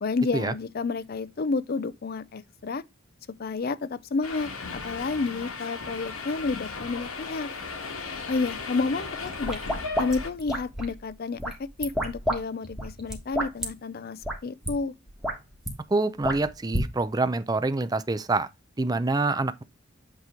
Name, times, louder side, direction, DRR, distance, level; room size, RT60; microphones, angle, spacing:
voice 1, 0.0-2.8 3.4-7.5 8.3-9.6 10.0-11.5 11.8-14.9, left 4 dB, 45° left, 0.5 m, -30 dB
Subway metro underground, 4.2-10.3, left 4 dB, 85° left, 1.5 m, -36 dB
sound 1, 9.3-11.0 11.4-12.4 12.6-13.7 14.2-14.4 14.6-14.7 15.1-15.7 16.2-16.9, equal, ahead, 1.3 m, -29 dB
voice 2, 15.9-18.5 18.8-19.6, right 3 dB, 20° right, 0.4 m, -26 dB
8.2 x 3.0 x 4.9 m
head